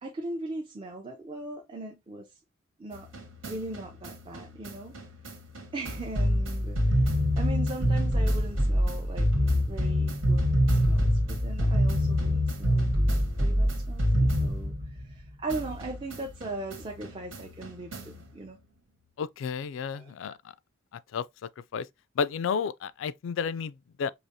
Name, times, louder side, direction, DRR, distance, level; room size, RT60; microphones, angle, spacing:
voice 1, 0.0-2.3 2.8-3.1 3.5-4.9 5.7-9.3 9.7-13.0 13.4-18.6 19.9-20.4, right 2 dB, 25° right, 0.5 m, -39 dB
sound 1, 2.9-15.2 15.5-18.3, equal, 85° right, 1.5 m, -26 dB
voice 2, 19.2-20.4 21.1-21.9 22.2-24.1, left 6 dB, 65° left, 0.3 m, -32 dB
4.7 x 2.9 x 2.6 m
head